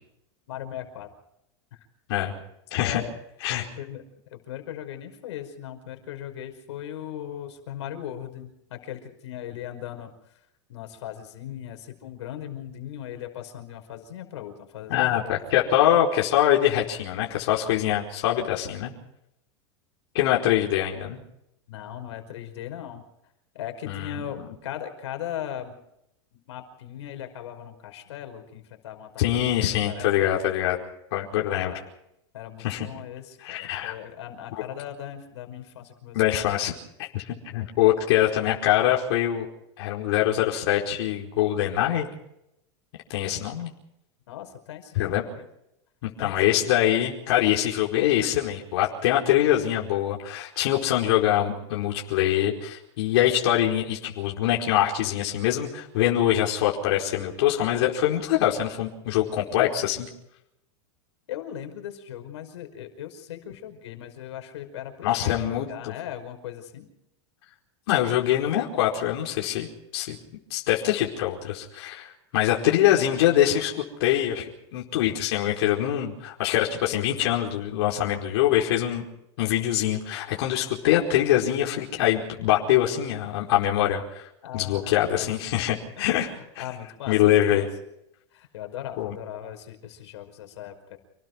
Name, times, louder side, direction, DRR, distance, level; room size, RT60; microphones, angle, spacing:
voice 1, 0.5-1.1 2.8-3.1 3.6-4.0 4.3-10.1 10.7-15.4 21.7-23.0 23.5-25.8 26.3-30.1 31.5-31.9 32.3-36.4 44.3-45.5 46.2-46.6 61.3-66.9 84.4-85.3 86.0-87.7 88.3-91.0, left 10 dB, 80° left, 6 dB, 5.3 m, -38 dB
voice 2, 2.7-3.0 3.4-3.6 14.9-18.9 20.1-21.2 23.9-24.2 29.2-30.8 31.1-31.7 32.6-32.9 33.4-33.9 34.5-34.6 36.1-36.7 37.1-39.5 39.8-42.1 43.1-43.7 44.9-45.2 46.0-60.1 65.0-65.9 67.9-69.7 69.9-70.2 70.5-73.7 74.0-79.0 79.4-84.3 84.5-86.3 86.5-86.6 87.1-87.7 89.0-89.1, left 12 dB, 65° left, -2 dB, 4.7 m, -24 dB
29.0 x 20.0 x 4.7 m, 0.80 s
supercardioid pair, 160°, 14 cm